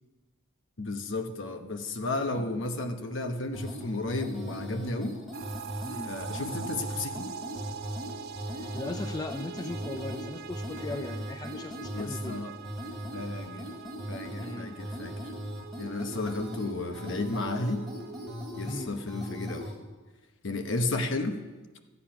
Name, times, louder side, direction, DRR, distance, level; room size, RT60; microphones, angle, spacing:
voice 1, 0.8-5.2 6.0-7.3 11.9-12.5 13.1-13.7 14.1-15.2 15.8-17.9 18.6-19.7 20.4-21.4, left 2 dB, 65° left, 6 dB, 1.0 m, -33 dB
sound 1, 3.5-19.7, equal, ahead, 3.1 m, -39 dB
sound 2, 5.3-18.4, right 7 dB, 50° right, 0.3 m, -44 dB
voice 2, 5.8-6.2 8.4-12.4 14.4-14.8 18.6-19.0, left 2 dB, 20° left, 5 dB, 0.4 m, -38 dB
13.5 x 8.4 x 5.8 m, 1.3 s
head